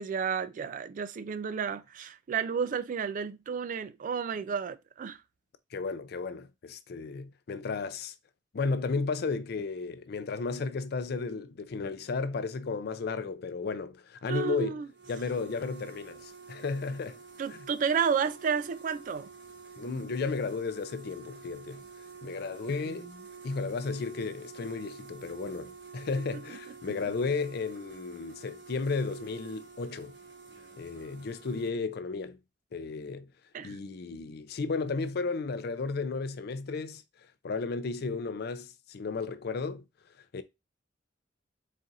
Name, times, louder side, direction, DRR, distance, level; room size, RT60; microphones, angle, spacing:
voice 1, 0.0-5.2 14.3-14.9 17.4-19.3 22.9-23.1 26.8-26.9 33.5-33.8, right 6 dB, 45° right, 0.3 m, -32 dB
voice 2, 5.7-8.1 8.5-14.8 15.1-17.2 17.5-17.6 19.8-21.8 22.2-23.1 23.4-30.1 30.8-32.4 32.7-33.3 33.6-37.0 37.4-39.8 40.3-40.4, left 4 dB, 60° left, 0.4 m, -34 dB
sound 1, 14.9-31.7, right 5 dB, 65° right, 0.9 m, -49 dB
4.1 x 2.5 x 3.9 m
head